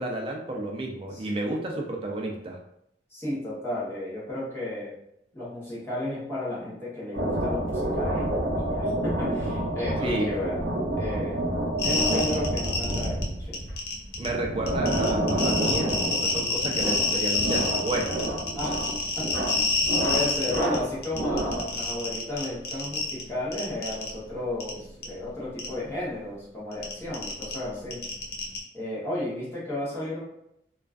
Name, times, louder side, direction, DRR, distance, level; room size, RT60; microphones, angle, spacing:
voice 1, 0.0-2.6 10.0-10.3 14.2-18.2, right 2 dB, 30° right, 1 dB, 0.3 m, -31 dB
voice 2, 3.1-4.9 5.3-8.3 8.6-11.4 11.8-13.7 18.5-18.8 19.2-19.3 19.5-19.6 20.0-28.0 28.7-30.2, left 1 dB, 15° left, -8 dB, 0.8 m, -33 dB
sound 1, 7.1-21.8, right 1 dB, 65° right, 0.7 m, -29 dB
sound 2, 11.8-13.2 13.5-14.3 14.7-20.7 21.0-23.2 23.5-24.1 24.6-24.7 25.0-25.1 25.6-25.7 26.7-28.6, left 3 dB, 55° left, 0.5 m, -27 dB
2.3 x 2.3 x 2.3 m, 0.78 s
head